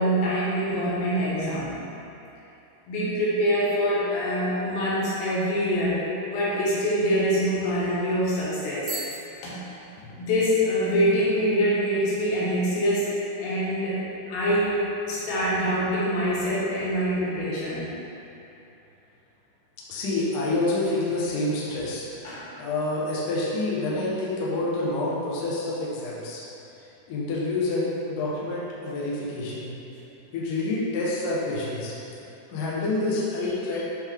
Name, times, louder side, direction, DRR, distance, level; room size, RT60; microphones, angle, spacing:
voice 1, 0.0-1.8 2.9-9.0 9.4-9.5 10.2-13.1 13.4-14.0 14.3-14.8 15.1-17.9 22.2-22.5, equal, 70° left, -8 dB, 3.4 m, -25 dB
Bicycle bell, 8.8-10.5, right 3 dB, 70° right, 2.7 m, -39 dB
voice 2, 19.9-22.1 22.6-26.4 27.1-29.7 30.3-31.9 32.5-33.8, left 2 dB, 90° left, -6 dB, 1.8 m, -27 dB
10.5 x 3.8 x 3.6 m, 2.8 s
omnidirectional pair, 5.5 m